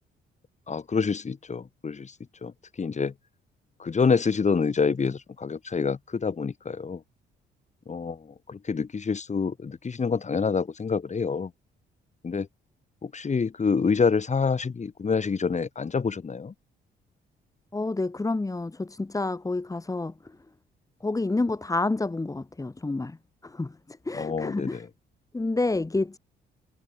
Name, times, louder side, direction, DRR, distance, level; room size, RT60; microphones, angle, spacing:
voice 1, 0.7-2.1 2.4-2.5 2.8-3.1 3.8-7.0 7.9-11.5 12.2-12.5 13.0-16.5 24.1-24.9, left 5 dB, 35° left, 6.0 m, -27 dB
voice 2, 17.7-20.1 21.0-23.2 23.4-24.8 25.3-26.2, left 2 dB, 15° left, 2.1 m, -29 dB
cardioid pair, 90°, 20 cm